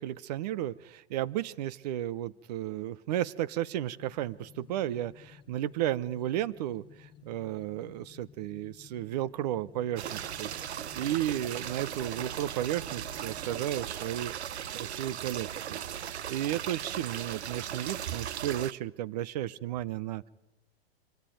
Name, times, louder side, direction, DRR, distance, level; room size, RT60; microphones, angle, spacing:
voice 1, 0.0-15.8 16.3-20.3, right 12 dB, 40° right, 20 dB, 0.7 m, -34 dB
sound 1, 4.0-13.7, left 9 dB, 15° left, 1.2 m, -55 dB
sound 2, 10.0-18.7, right 9 dB, 90° right, 0.8 m, -38 dB
24.5 x 14.0 x 9.2 m, 0.92 s
hypercardioid pair, 150°, 32 cm